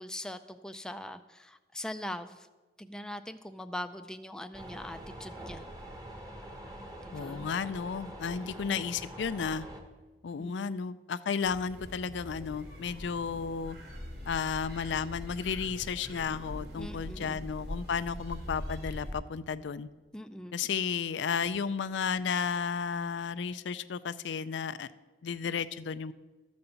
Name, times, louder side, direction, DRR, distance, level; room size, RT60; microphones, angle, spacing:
voice 1, 0.0-2.5 2.8-5.7 7.0-7.4 8.4-8.5 10.4-10.7 16.7-17.4 20.1-20.5, left 1 dB, 5° left, 7 dB, 0.3 m, -41 dB
sound 1, 4.5-9.8, right 1 dB, 20° right, 1.1 m, -45 dB
voice 2, 7.1-9.7 10.2-13.8 14.3-19.9 20.5-24.9 25.2-26.1, left 6 dB, 90° left, 14 dB, 0.4 m, -33 dB
sound 2, 11.4-19.1, equal, 80° right, 3.1 m, -42 dB
13.0 x 5.2 x 7.0 m, 1.2 s
head